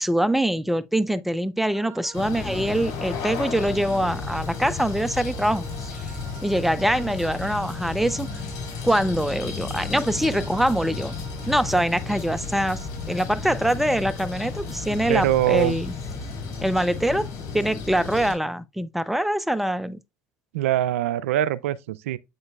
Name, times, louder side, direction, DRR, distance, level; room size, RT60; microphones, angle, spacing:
voice 1, 0.0-5.6 6.0-6.1 6.4-8.3 8.8-11.1 11.5-15.9 16.6-17.3 17.5-20.0, right 1 dB, ahead, 0.5 m, -24 dB
sound 1, 1.7-17.6, right 6 dB, 45° right, 1.8 m, -48 dB
sound 2, 2.1-18.3, left 5 dB, 60° left, 3.2 m, -33 dB
sound 3, 7.2-14.9, left 5 dB, 80° left, 1.1 m, -45 dB
voice 2, 15.1-15.8 20.5-22.2, right 13 dB, 85° right, 0.3 m, -23 dB
8.0 x 5.1 x 2.3 m
hypercardioid pair, 80°, 7 cm